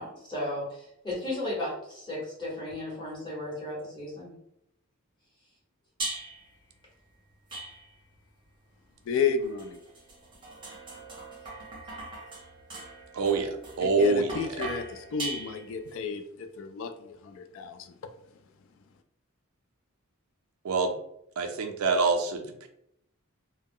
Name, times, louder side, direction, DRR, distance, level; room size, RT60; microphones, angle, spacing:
voice 1, 0.0-4.3, left 1 dB, 20° left, -5 dB, 1.1 m, -35 dB
sound 1, 6.0-6.5 7.5-8.2 9.1-16.0, right 2 dB, 25° right, 0.7 m, -40 dB
voice 2, 9.1-9.8 13.8-17.9, left 6 dB, 65° left, 8 dB, 0.3 m, -32 dB
voice 3, 13.1-14.7 20.6-21.0 21.4-22.7, right 4 dB, 90° right, 5 dB, 0.4 m, -26 dB
2.3 x 2.0 x 3.5 m, 0.76 s
head